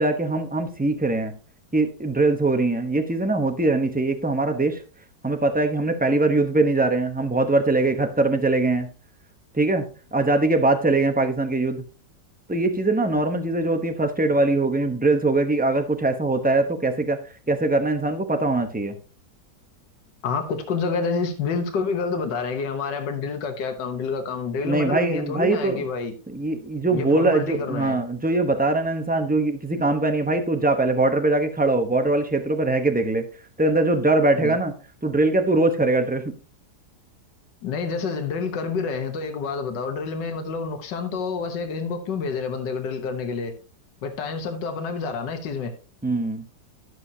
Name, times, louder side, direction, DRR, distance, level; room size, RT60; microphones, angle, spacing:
voice 1, 0.0-1.3 1.7-4.8 5.2-8.9 9.5-9.9 10.1-11.8 12.5-17.2 17.5-19.0 24.6-25.8 26.3-33.2 33.6-34.7 35.0-36.2 46.0-46.4, right 2 dB, 10° right, 0.5 m, -22 dB
voice 2, 20.2-26.1 26.9-28.0 34.4-34.6 37.6-43.5 44.0-45.7, left 5 dB, 80° left, 1.8 m, -28 dB
12.0 x 7.7 x 2.8 m
omnidirectional pair, 1.9 m